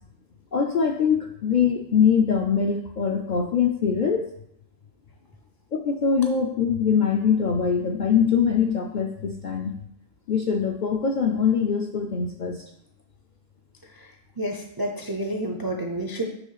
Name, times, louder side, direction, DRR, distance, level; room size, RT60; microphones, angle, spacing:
voice 1, 0.5-4.2 5.8-9.8 10.3-12.6, left 6 dB, 60° left, 2 dB, 0.5 m, -23 dB
voice 2, 14.4-16.3, right 1 dB, 35° right, 1 dB, 0.3 m, -29 dB
6.1 x 3.1 x 5.6 m, 0.74 s
omnidirectional pair, 1.3 m